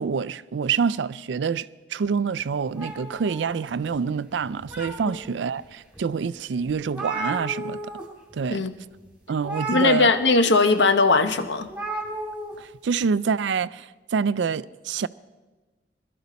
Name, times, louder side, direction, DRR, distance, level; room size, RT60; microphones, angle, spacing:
voice 1, 0.0-7.8 8.3-8.6 9.3-10.1 12.6-15.1, right 6 dB, 85° right, 0.4 m, -26 dB
sound 1, 2.8-4.0 4.4-5.3 5.9-6.0 6.4-6.5 6.7-8.0 8.3-8.5 9.4-10.5 11.7-12.5, right 2 dB, 5° right, 2.3 m, -33 dB
voice 2, 9.7-11.7, left 3 dB, 80° left, 0.9 m, -19 dB
21.5 x 12.0 x 4.1 m
head